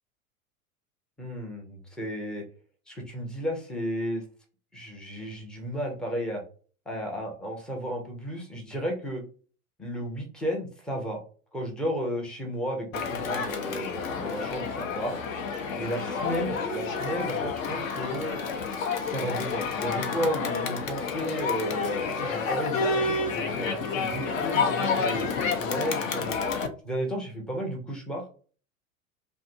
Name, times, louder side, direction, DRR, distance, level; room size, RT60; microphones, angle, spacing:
voice 1, 1.2-2.4 2.9-4.3 4.7-6.4 6.9-9.2 9.8-11.2 11.5-15.2 15.7-18.4 19.0-26.3 26.8-28.3, equal, ahead, 0 dB, 0.3 m, -33 dB
Crowd, 12.9-26.7, left 4 dB, 65° left, 0.6 m, -29 dB
2.6 x 2.5 x 2.5 m, 0.40 s
figure-of-eight pair, 85°, 43 cm